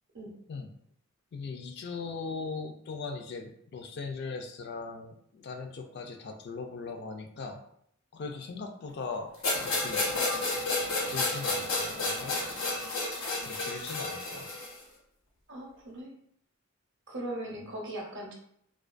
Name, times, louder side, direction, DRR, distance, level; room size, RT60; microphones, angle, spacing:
voice 1, 1.3-7.6 8.1-10.2 11.0-12.4 13.5-14.6 17.5-17.6, left 4 dB, 50° left, 4 dB, 0.3 m, -39 dB
sound 1, 9.4-14.8, left 2 dB, 80° left, 0.9 m, -31 dB
voice 2, 15.5-16.1 17.1-18.3, right 1 dB, 60° right, -1 dB, 0.6 m, -39 dB
2.3 x 2.2 x 2.4 m, 0.69 s
head